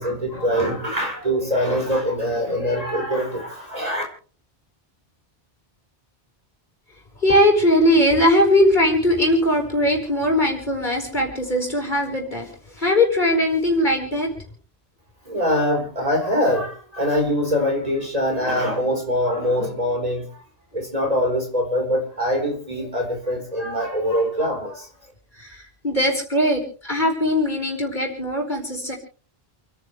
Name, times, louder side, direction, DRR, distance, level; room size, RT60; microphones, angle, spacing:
voice 1, 0.0-4.0 15.2-20.3 20.7-24.9, equal, 40° right, 4.8 m, -23 dB
voice 2, 7.2-14.4 15.7-15.8 25.4-28.9, left 1 dB, 50° left, 5.2 m, -20 dB
29.0 x 10.5 x 3.3 m
omnidirectional pair, 1.0 m